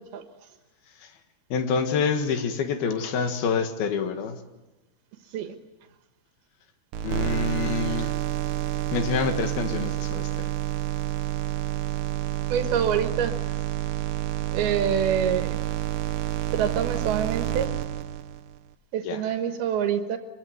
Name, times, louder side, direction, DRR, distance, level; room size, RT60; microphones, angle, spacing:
voice 1, 1.5-4.4 7.0-8.1 8.9-10.5 14.9-15.0 19.0-19.2, left 6 dB, 80° left, 7 dB, 3.6 m, -27 dB
sound 1, 6.9-18.6, right 13 dB, 65° right, 2.2 m, -29 dB
voice 2, 12.5-13.3 14.5-15.6 16.5-17.7 18.9-20.2, right 8 dB, 85° right, 7 dB, 3.3 m, -26 dB
26.5 x 22.5 x 9.4 m, 1.1 s
omnidirectional pair, 4.3 m